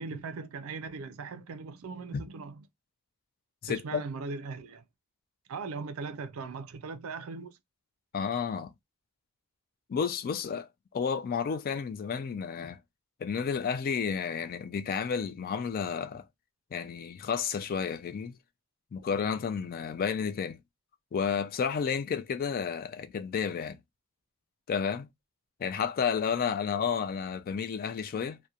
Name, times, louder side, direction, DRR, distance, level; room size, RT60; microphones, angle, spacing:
voice 1, 0.0-2.6 3.7-4.8 5.5-7.6, right 4 dB, 75° right, 0.4 m, -39 dB
voice 2, 3.6-4.0 8.1-8.7 9.9-12.8 13.2-16.3 16.7-18.4 18.9-20.6 21.1-23.8 24.7-25.1 25.6-28.4, left 6 dB, 45° left, 0.3 m, -31 dB
2.8 x 2.1 x 2.3 m
head